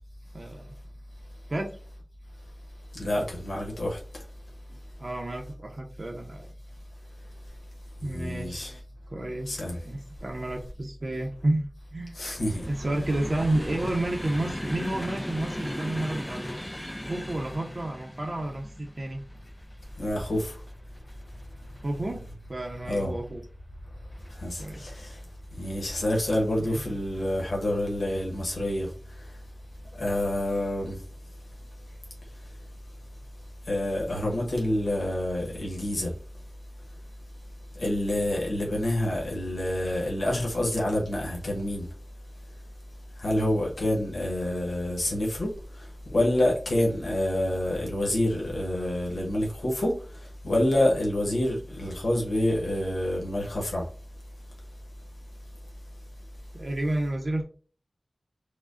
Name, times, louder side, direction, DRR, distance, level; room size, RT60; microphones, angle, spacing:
voice 1, 0.3-0.8 1.5-1.8 4.7-6.5 8.0-8.7 9.1-11.7 11.9-12.2 12.7-16.6 17.1-19.2 21.8-22.2 22.5-23.4 24.6-24.9 26.6-26.8 56.5-57.4, right 1 dB, 55° right, 0.6 m, -31 dB
voice 2, 3.0-4.0 8.0-8.8 9.5-9.8 12.1-12.6 20.0-20.5 22.9-23.1 24.4-25.2 25.6-28.9 29.9-31.0 33.7-36.1 37.8-41.8 43.2-45.5 46.1-49.9 50.4-53.8, left 1 dB, 85° left, 1.0 m, -27 dB
sound 1, 12.4-23.5 24.1-24.8 25.6-25.9 26.1-26.3, equal, 15° left, 0.4 m, -38 dB
4.8 x 2.2 x 2.5 m
wide cardioid pair, 70°, 0 cm